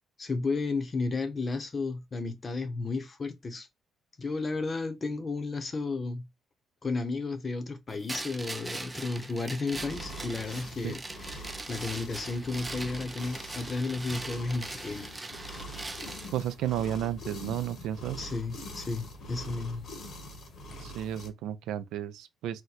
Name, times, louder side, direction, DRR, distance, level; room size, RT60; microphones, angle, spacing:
voice 1, 0.2-3.7 4.2-6.3 6.8-11.0 11.4-15.1 18.2-19.9, left 3 dB, 35° left, 0.7 m, -33 dB
sound 1, 8.1-16.3, right 2 dB, 15° right, 0.4 m, -41 dB
sound 2, 9.7-21.3, equal, 60° left, 1.0 m, -44 dB
voice 2, 16.3-18.3 20.8-22.6, right 11 dB, 85° right, 0.4 m, -33 dB
2.9 x 2.1 x 3.9 m
cardioid pair, 90°, 0 cm